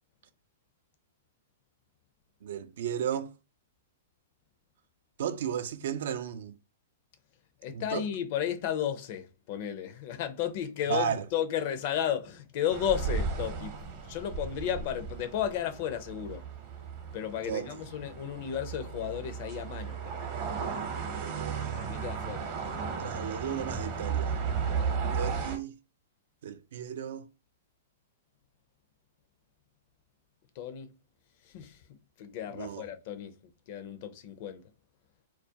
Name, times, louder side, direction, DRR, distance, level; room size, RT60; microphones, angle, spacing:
voice 1, 2.4-3.3 5.2-6.5 7.7-8.0 10.9-11.3 17.4-17.7 21.1-21.8 23.0-24.4 25.1-25.7 26.4-27.3 32.5-32.9, right 8 dB, 65° right, 0.3 m, -34 dB
voice 2, 7.6-16.5 17.1-20.3 21.7-22.9 30.6-31.0 31.4-31.8 32.2-33.3 33.7-34.6, left 9 dB, 50° left, 0.5 m, -34 dB
sound 1, 12.7-25.6, right 6 dB, 40° right, 0.7 m, -35 dB
2.3 x 2.1 x 2.7 m
hypercardioid pair, 115°, 0 cm